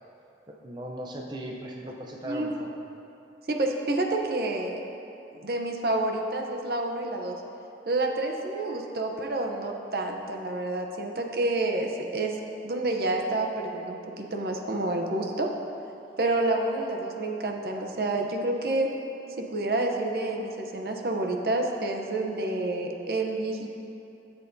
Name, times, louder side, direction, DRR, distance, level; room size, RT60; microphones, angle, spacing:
voice 1, 0.6-2.7, right 1 dB, 25° right, -1 dB, 0.6 m, -37 dB
voice 2, 2.2-2.6 3.5-4.8 5.4-7.4 7.9-11.9 12.1-12.3 12.6-15.5 16.2-18.9 19.5-23.7, right 2 dB, 60° right, 2 dB, 0.8 m, -28 dB
13.5 x 8.2 x 2.7 m, 2.8 s
head